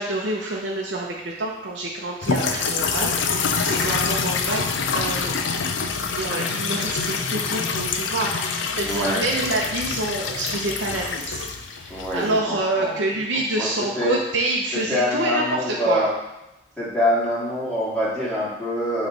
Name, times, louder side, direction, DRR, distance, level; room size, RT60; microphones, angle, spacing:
voice 1, 0.0-4.6 4.9-5.4 6.1-16.1, right 2 dB, 75° right, -3 dB, 0.7 m, -27 dB
sound 1, 2.2-12.4, left 5 dB, 85° left, 0.5 m, -26 dB
voice 2, 8.8-9.2 11.9-12.9 13.6-14.2 14.9-16.1 16.8-19.1, equal, 5° left, -9 dB, 2.3 m, -25 dB
8.0 x 3.2 x 4.0 m, 0.94 s
head